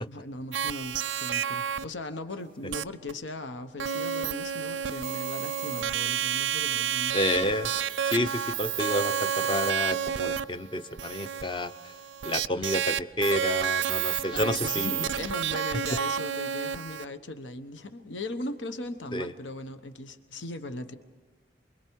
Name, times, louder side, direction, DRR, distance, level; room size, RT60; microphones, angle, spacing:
voice 1, 0.1-7.2 14.3-20.9, left 2 dB, 80° left, 9 dB, 1.1 m, -38 dB
sound 1, 0.5-1.8 2.7-2.8 3.1-3.2 3.8-17.0, right 8 dB, 85° right, 0.5 m, -30 dB
voice 2, 7.1-7.7 8.0-11.7 12.2-15.0 19.1-19.3, left 1 dB, 25° left, 10 dB, 0.7 m, -29 dB
28.0 x 22.5 x 4.7 m, 1.4 s
head